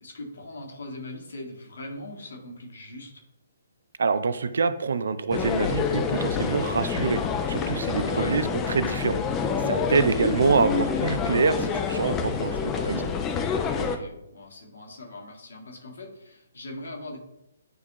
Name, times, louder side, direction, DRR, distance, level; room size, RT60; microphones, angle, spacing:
voice 1, 0.0-3.2 8.0-8.4 10.0-10.3 13.7-17.2, left 1 dB, 60° left, 0 dB, 1.6 m, -41 dB
voice 2, 4.0-7.2 7.5-9.2 9.7-13.1, right 5 dB, 60° right, 13 dB, 0.4 m, -25 dB
sound 1, 5.3-14.0, left 6 dB, 15° left, 0.6 m, -27 dB
9.3 x 3.5 x 2.9 m, 0.86 s
figure-of-eight pair, 130°, 0 cm